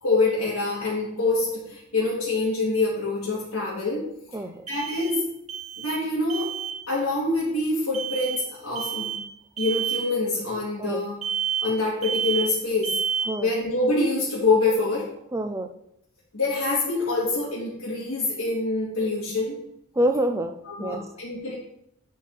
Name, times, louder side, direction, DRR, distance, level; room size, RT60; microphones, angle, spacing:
voice 1, 0.0-4.1 4.7-5.2 5.8-6.5 6.9-9.2 9.6-11.2 11.6-13.0 13.4-15.1 16.3-19.6 20.7-21.6, left 3 dB, 90° left, -9 dB, 2.6 m, -25 dB
sound 1, 1.4-1.5 4.7-6.0 6.3-6.8 7.9-8.4 8.7-9.2 9.6-10.1 11.2-11.8 12.0-12.6 12.8-13.4, right 7 dB, 30° right, 0.8 m, -29 dB
voice 2, 4.3-4.7 10.8-11.0 13.3-13.5 15.3-15.7 20.0-21.0, right 1 dB, 15° right, 6 dB, 0.4 m, -27 dB
10.0 x 4.3 x 4.1 m, 0.78 s
head